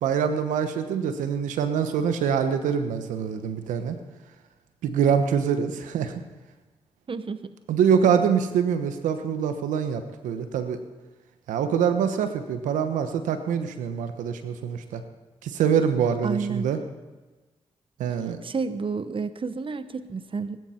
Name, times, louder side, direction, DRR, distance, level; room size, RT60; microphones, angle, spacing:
voice 1, 0.0-4.0 4.8-6.1 7.7-10.8 11.5-15.0 15.4-16.8 18.0-18.4, right 7 dB, 85° right, 9 dB, 1.1 m, -24 dB
voice 2, 7.1-7.6 16.2-16.7 18.4-20.6, right 4 dB, 45° right, 12 dB, 0.9 m, -30 dB
21.5 x 12.5 x 4.4 m, 1.2 s
supercardioid pair, 40°, 13 cm